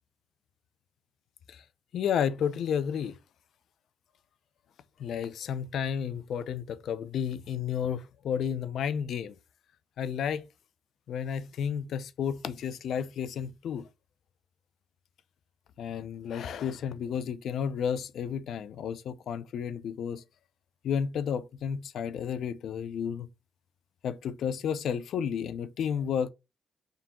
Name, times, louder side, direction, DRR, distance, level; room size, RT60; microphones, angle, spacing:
voice 1, 1.9-3.2 5.0-9.4 10.0-10.4 11.1-13.9 15.8-20.2 20.8-23.3 24.0-26.3, left 8 dB, 70° left, 0.5 m, -32 dB
3.7 x 2.8 x 3.6 m
cardioid pair, 90°, 0 cm